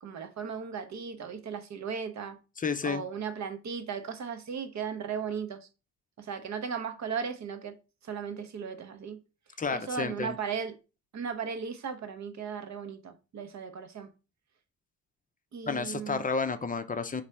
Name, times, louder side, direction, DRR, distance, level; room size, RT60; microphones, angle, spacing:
voice 1, 0.0-2.4 2.8-5.7 6.2-7.8 8.0-9.2 9.7-10.8 11.1-14.1 15.5-16.2, right 6 dB, 40° right, 0.8 m, -36 dB
voice 2, 2.6-3.0 9.6-10.4 15.7-17.2, left 5 dB, 20° left, 0.6 m, -31 dB
4.0 x 2.6 x 4.4 m
hypercardioid pair, 45°, 43 cm